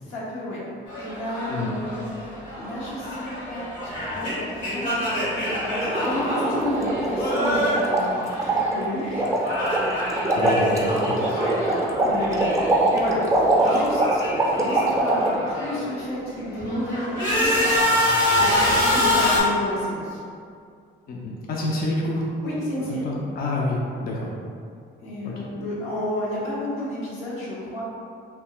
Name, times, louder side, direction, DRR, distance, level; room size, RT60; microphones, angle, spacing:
voice 1, 0.0-0.6 0.9-9.3 10.4-10.9 11.9-12.4 12.7-13.2 13.6-14.2 14.5-17.6 18.0-20.2 22.4-23.1 25.0-27.8, left 1 dB, 90° left, -7 dB, 0.8 m, -31 dB
sound 1, 0.9-8.9 9.1-12.9 13.2-15.9 16.4-19.4, left 1 dB, 70° left, 1.1 m, -26 dB
sound 2, 5.8-15.4, right 2 dB, 15° right, 0.5 m, -23 dB
voice 2, 10.3-11.5 21.1-22.2 23.0-24.3 25.2-25.5, left 2 dB, 50° left, -3 dB, 0.4 m, -28 dB
2.7 x 2.3 x 2.9 m, 2.3 s
cardioid pair, 90°, 20 cm